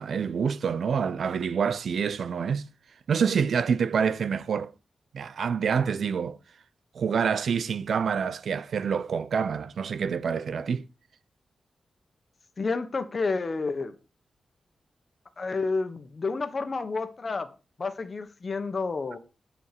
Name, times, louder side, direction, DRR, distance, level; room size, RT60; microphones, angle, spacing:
voice 1, 0.0-2.7 3.1-4.7 5.1-6.4 6.9-10.9, right 6 dB, 75° right, 0.6 m, -27 dB
voice 2, 12.6-13.9 15.4-17.5 17.8-19.2, left 4 dB, 40° left, 1.3 m, -30 dB
11.0 x 5.0 x 6.9 m
wide cardioid pair, 120°, 0 cm